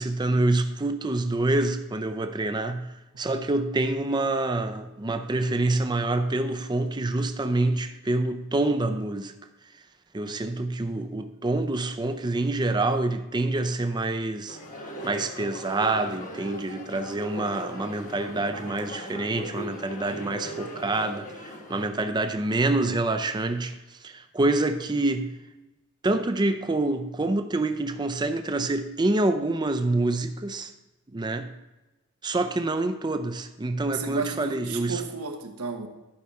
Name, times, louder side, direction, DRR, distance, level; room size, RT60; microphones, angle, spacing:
voice 1, 0.0-9.3 10.1-25.4 26.0-30.7 31.1-31.5 32.2-35.0, right 2 dB, 20° right, 0.5 m, -27 dB
sound 1, 14.5-21.9, left 1 dB, 35° left, 1.2 m, -39 dB
voice 2, 33.9-35.9, right 5 dB, 90° right, 1.2 m, -33 dB
11.5 x 5.6 x 4.7 m
head